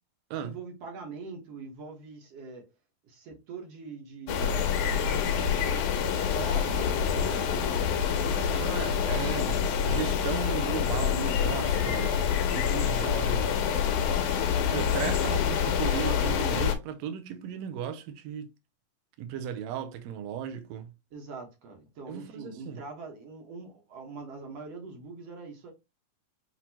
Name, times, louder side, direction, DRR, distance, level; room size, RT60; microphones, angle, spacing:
voice 1, 0.4-2.7 3.0-5.3 6.1-7.9 21.1-25.7, right 4 dB, 60° right, 2.1 m, -43 dB
sound 1, 4.3-16.8, left 7 dB, 85° left, 2.2 m, -27 dB
voice 2, 8.5-9.6 9.8-13.5 14.2-14.4 14.7-18.5 19.2-20.9 22.1-22.8, right 9 dB, 75° right, 1.8 m, -36 dB
6.1 x 2.9 x 2.8 m
omnidirectional pair, 3.5 m